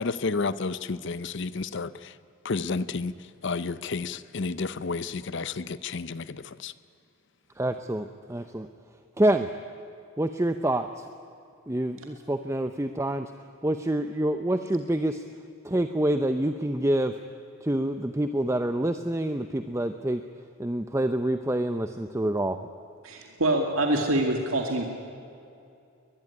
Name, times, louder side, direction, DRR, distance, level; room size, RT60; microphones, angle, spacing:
voice 1, 0.0-2.1 2.4-3.1 3.4-6.7, left 4 dB, 55° left, 0.6 m, -31 dB
voice 2, 7.6-8.7 9.2-9.5 10.2-11.1 11.7-13.3 13.6-15.2 15.6-17.2 17.6-20.2 20.6-22.7, right 1 dB, 15° right, 0.6 m, -27 dB
voice 3, 23.0-24.8, right 1 dB, 70° right, 2.2 m, -25 dB
22.0 x 21.5 x 9.8 m
head